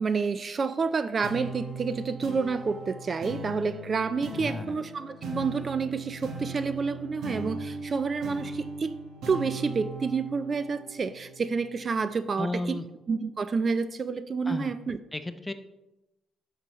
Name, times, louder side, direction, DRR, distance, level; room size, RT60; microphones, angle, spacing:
voice 1, 0.0-9.0 9.3-12.8 13.1-15.0, right 5 dB, 40° right, 12 dB, 0.3 m, -29 dB
sound 1, 1.2-12.0, right 2 dB, 75° right, 1.4 m, -39 dB
voice 2, 4.4-4.8 12.4-12.9 14.4-14.7 15.1-15.5, left 2 dB, 15° left, 9 dB, 0.6 m, -33 dB
7.3 x 5.5 x 3.0 m, 0.97 s
cardioid pair, 90°, 0 cm